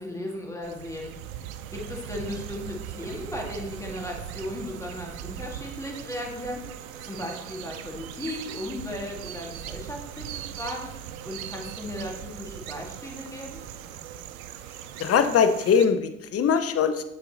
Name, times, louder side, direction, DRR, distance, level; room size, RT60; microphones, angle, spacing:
voice 1, 0.0-10.9 11.2-13.6, left 1 dB, 5° left, -1 dB, 2.1 m, -36 dB
sound 1, 0.6-15.9, right 10 dB, 70° right, 0.7 m, -40 dB
voice 2, 15.0-17.0, left 6 dB, 35° left, 10 dB, 0.8 m, -21 dB
9.6 x 5.8 x 3.0 m, 0.85 s
figure-of-eight pair, 55°, 43 cm